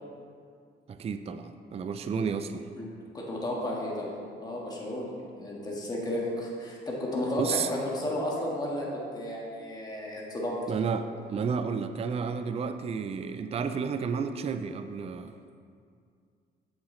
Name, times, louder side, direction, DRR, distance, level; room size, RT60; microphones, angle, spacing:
voice 1, 0.9-2.7 7.4-7.7 10.7-15.5, right 6 dB, 30° right, 9 dB, 0.4 m, -31 dB
voice 2, 3.1-4.1 4.4-10.6, left 1 dB, 20° left, -4 dB, 1.5 m, -33 dB
7.5 x 6.4 x 3.1 m, 2.2 s
cardioid pair, 90°, 20 cm